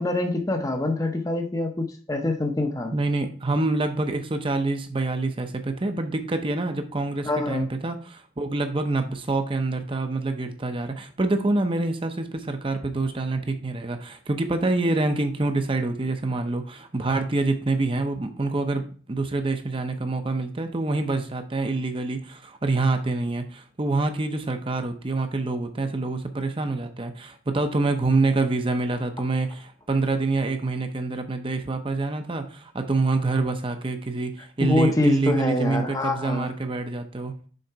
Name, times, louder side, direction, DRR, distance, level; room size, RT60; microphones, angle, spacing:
voice 1, 0.0-2.9 7.2-7.7 34.4-36.5, left 2 dB, 15° left, 4 dB, 0.6 m, -25 dB
voice 2, 2.9-37.3, right 3 dB, 25° right, 7 dB, 0.6 m, -26 dB
6.6 x 3.8 x 4.5 m, 0.42 s
head